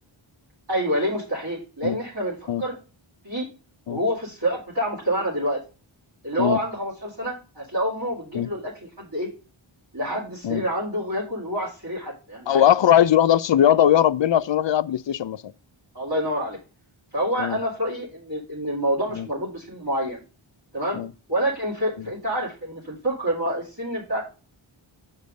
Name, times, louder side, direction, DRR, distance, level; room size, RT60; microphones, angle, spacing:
voice 1, 0.7-2.8 3.2-3.5 3.9-5.6 6.2-9.3 9.9-12.6 15.9-16.6 17.1-20.2 20.7-21.0 21.3-24.2, equal, 50° right, 2.6 m, -27 dB
voice 2, 12.5-15.5 17.4-17.6 19.1-19.3 20.9-21.1, left 10 dB, 65° left, 0.5 m, -19 dB
6.8 x 4.5 x 5.2 m
wide cardioid pair, 50°, 49 cm